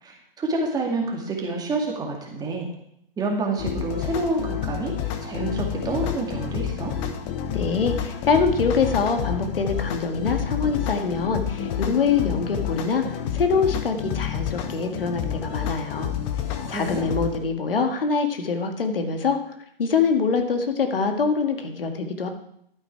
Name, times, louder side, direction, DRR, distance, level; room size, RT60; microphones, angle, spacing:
voice 1, 0.0-2.7 3.2-6.9 16.6-17.0, right 2 dB, 15° right, 0 dB, 2.3 m, -28 dB
sound 1, 3.6-17.4, left 9 dB, 30° left, 1.3 m, -29 dB
voice 2, 7.5-16.1 16.7-19.5 19.8-22.3, left 5 dB, 75° left, 5 dB, 1.9 m, -24 dB
12.5 x 9.4 x 4.7 m, 0.74 s
hypercardioid pair, 130°, 29 cm